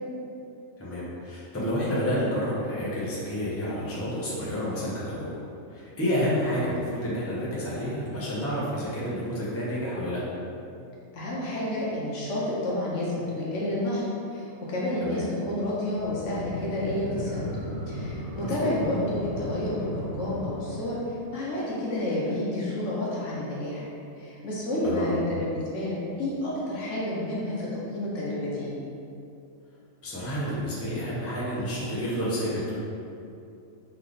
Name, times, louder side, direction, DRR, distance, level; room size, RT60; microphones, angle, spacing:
voice 1, 0.8-5.3 5.7-10.2 15.0-15.3 18.4-18.7 24.8-25.1 30.0-32.7, equal, 10° left, -9 dB, 0.8 m, -29 dB
voice 2, 11.1-14.0 14.3-17.5 17.9-23.8 24.2-28.8, left 1 dB, 65° left, -6 dB, 1.0 m, -30 dB
sound 1, 16.0-21.2, equal, 65° right, 1.1 m, -36 dB
3.4 x 3.3 x 3.9 m, 2.6 s
omnidirectional pair, 1.4 m